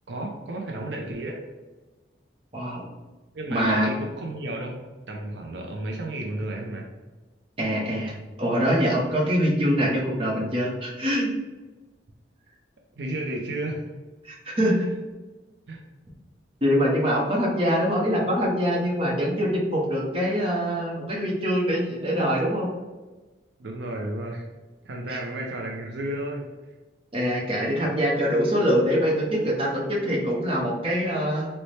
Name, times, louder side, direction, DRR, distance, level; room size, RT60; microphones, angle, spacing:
voice 1, 0.1-1.4 3.3-4.8 5.1-6.9 13.0-13.9 15.7-15.8 23.6-24.5 24.8-26.5, right 1 dB, 70° right, 0 dB, 0.5 m, -32 dB
voice 2, 2.5-2.8 3.5-3.9 7.6-11.3 14.2-14.9 16.6-22.7 25.1-25.2 27.1-31.5, equal, 30° right, -3 dB, 0.7 m, -24 dB
4.1 x 2.1 x 3.2 m, 1.2 s
head